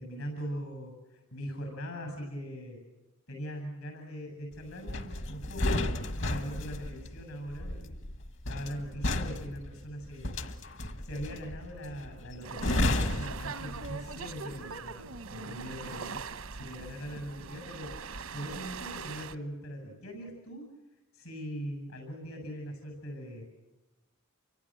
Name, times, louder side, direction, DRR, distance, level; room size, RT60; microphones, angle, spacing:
voice 1, 0.0-2.8 3.3-8.0 8.5-10.3 11.0-16.2 16.5-18.0 18.3-20.7 21.1-23.5, equal, 80° left, 4 dB, 7.9 m, -41 dB
sound 1, 4.9-14.2 14.5-14.8, left 1 dB, 60° left, 1.5 m, -33 dB
sound 2, 12.4-19.4, right 5 dB, 85° right, 1.1 m, -42 dB
29.0 x 24.5 x 7.8 m, 1.0 s
head